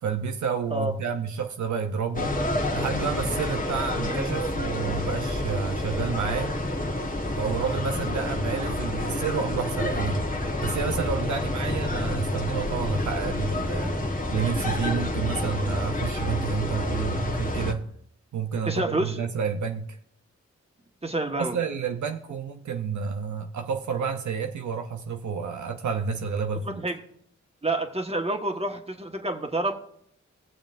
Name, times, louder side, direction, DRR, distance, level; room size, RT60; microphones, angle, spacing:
voice 1, 0.0-2.3 2.7-6.5 7.4-10.3 10.6-13.9 14.3-17.8 18.3-20.0 21.4-26.8, right 6 dB, 75° right, 6 dB, 0.7 m, -30 dB
sound 1, 2.1-17.7, left 1 dB, 30° left, 1.3 m, -28 dB
voice 2, 18.6-19.2 21.0-21.6 26.7-27.0 27.6-29.7, right 2 dB, 20° right, 4 dB, 1.5 m, -28 dB
20.5 x 7.0 x 2.6 m, 0.67 s
cardioid pair, 65°, 29 cm